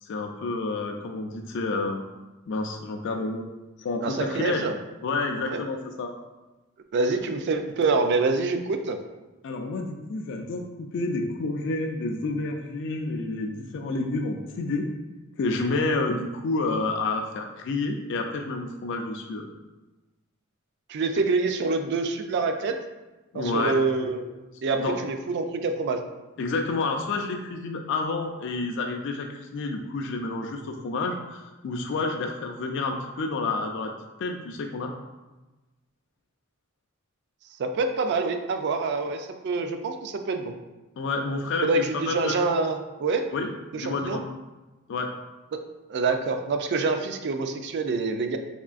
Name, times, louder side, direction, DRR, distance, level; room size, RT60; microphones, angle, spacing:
voice 1, 0.0-2.0 2.5-3.5 3.8-4.7 5.0-6.1 9.4-14.8 15.4-19.4 23.3-23.7 24.7-25.0 26.4-33.9 34.2-34.9 41.0-42.4 43.3-43.5 43.7-44.2 44.9-45.1, left 3 dB, 60° left, 3 dB, 0.3 m, -29 dB
voice 2, 4.0-4.8 5.4-5.6 6.9-9.0 20.9-22.8 23.3-24.3 24.6-26.0 37.6-40.5 41.6-43.2 43.7-44.2 45.9-48.4, right 3 dB, 55° right, 6 dB, 0.3 m, -26 dB
3.6 x 3.0 x 2.4 m, 1.1 s
head